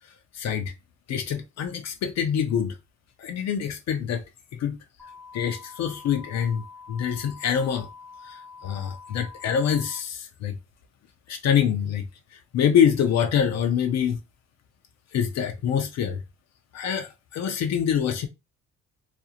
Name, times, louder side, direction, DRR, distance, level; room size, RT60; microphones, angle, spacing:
voice 1, 0.3-0.7 1.1-2.8 3.2-4.2 4.5-4.8 5.3-7.9 8.2-10.5 11.3-12.1 12.3-14.2 15.1-16.2 16.7-18.3, left 8 dB, 60° left, 0.5 m, -25 dB
sound 1, 5.0-10.0, left 5 dB, 5° left, 0.4 m, -46 dB
2.4 x 2.0 x 2.7 m
cardioid pair, 90°, 30 cm